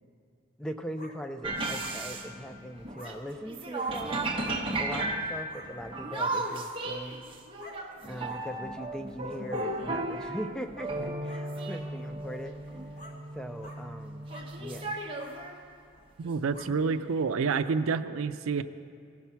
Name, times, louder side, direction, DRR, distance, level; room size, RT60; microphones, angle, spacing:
voice 1, 0.6-4.2 4.8-7.2 8.0-12.5 13.3-14.3 14.6-15.0 16.7-16.8, equal, 5° left, 8 dB, 0.3 m, -40 dB
sound 1, 1.0-1.1 1.8-2.0 2.9-3.1 3.7-3.9 4.4-4.6 5.5-5.7 6.4-6.6 7.6-7.8 8.3-8.4 9.4-9.7 10.5-10.6 11.3-11.4 12.0-12.1 13.0-13.1 13.6-13.8 14.3-14.5 15.2-15.3 15.9-16.0 16.5-16.7 17.5-17.6, left 1 dB, 35° left, 1.4 m, -48 dB
sound 2, 1.4-3.2 3.5-15.6 16.2-16.3 16.8-17.2, right 2 dB, 25° right, 0.8 m, -35 dB
voice 2, 16.2-18.6, right 5 dB, 90° right, 12 dB, 0.4 m, -28 dB
17.5 x 6.0 x 5.6 m, 2.4 s
head